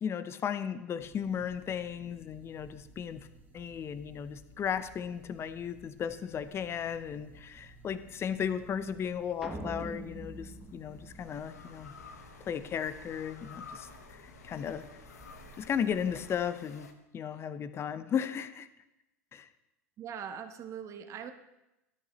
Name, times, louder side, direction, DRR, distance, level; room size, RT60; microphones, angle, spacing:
voice 1, 0.0-3.3 3.5-11.9 12.4-14.8 15.6-16.9 17.1-18.7 19.3-19.5, left 8 dB, 30° left, 12 dB, 0.7 m, -35 dB
sound 1, 1.0-16.5, right 2 dB, 20° right, 1.6 m, -56 dB
sound 2, 6.0-7.5 9.4-16.9, left 5 dB, 80° left, 0.9 m, -53 dB
sound 3, 9.4-11.9, right 1 dB, 5° right, 1.3 m, -43 dB
voice 2, 20.0-21.3, right 8 dB, 35° right, 8 dB, 0.9 m, -41 dB
13.0 x 8.8 x 3.1 m, 0.94 s
hypercardioid pair, 85°, 8 cm